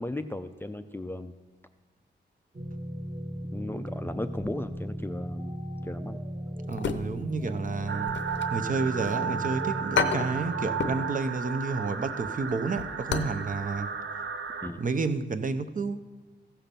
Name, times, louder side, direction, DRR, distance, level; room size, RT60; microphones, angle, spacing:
voice 1, 0.0-1.3 3.5-6.2 14.6-14.8, left 1 dB, 10° left, 8 dB, 0.4 m, -36 dB
sound 1, 2.5-11.1, equal, 20° right, 1.0 m, -37 dB
sound 2, 6.7-7.5 7.8-9.2 9.5-9.6 9.9-11.1 11.4-11.6 12.0-13.4 13.7-13.8 14.3-14.5 14.8-14.9, left 6 dB, 80° left, 0.7 m, -32 dB
voice 2, 6.7-8.2 8.5-13.9 14.8-16.0, right 4 dB, 45° right, 10 dB, 0.6 m, -30 dB
sound 3, 7.9-14.7, right 6 dB, 80° right, 0.9 m, -34 dB
14.5 x 5.8 x 6.8 m, 1.2 s
wide cardioid pair, 150°, 19 cm